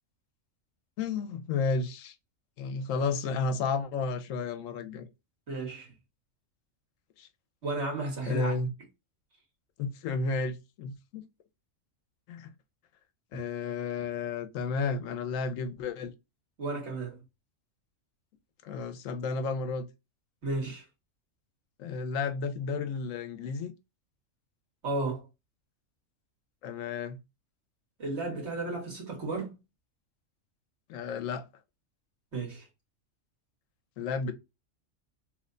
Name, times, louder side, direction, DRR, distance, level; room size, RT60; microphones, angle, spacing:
voice 1, 1.0-2.1 2.6-5.0 7.2-7.3 8.3-8.7 9.8-11.2 12.3-12.5 13.3-16.1 18.6-19.9 21.8-23.7 26.6-27.2 30.9-31.5 34.0-34.3, left 4 dB, 90° left, 1.0 m, -32 dB
voice 2, 5.5-5.9 7.6-8.6 16.6-17.2 20.4-20.8 24.8-25.3 28.0-29.5 32.3-32.7, right 2 dB, 60° right, 1.6 m, -33 dB
3.2 x 2.1 x 3.7 m
omnidirectional pair, 1.3 m